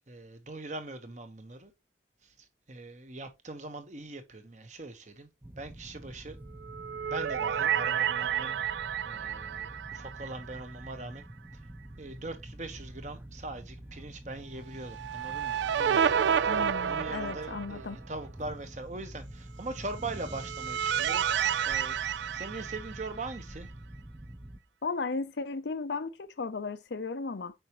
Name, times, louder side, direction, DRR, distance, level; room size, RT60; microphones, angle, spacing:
voice 1, 0.1-1.7 2.2-2.3 2.7-5.3 5.6-6.4 7.0-8.6 9.0-11.3 12.0-16.1 16.4-22.0 22.3-23.7, right 2 dB, 40° right, 1.2 m, -41 dB
sound 1, 5.4-24.6, right 1 dB, 10° right, 0.4 m, -47 dB
sound 2, 6.6-10.9 11.2-11.3 14.8-17.9 20.0-23.4, right 8 dB, 85° right, 0.4 m, -30 dB
voice 2, 16.5-18.0 24.8-27.5, left 4 dB, 80° left, 0.6 m, -35 dB
7.8 x 5.0 x 3.0 m
head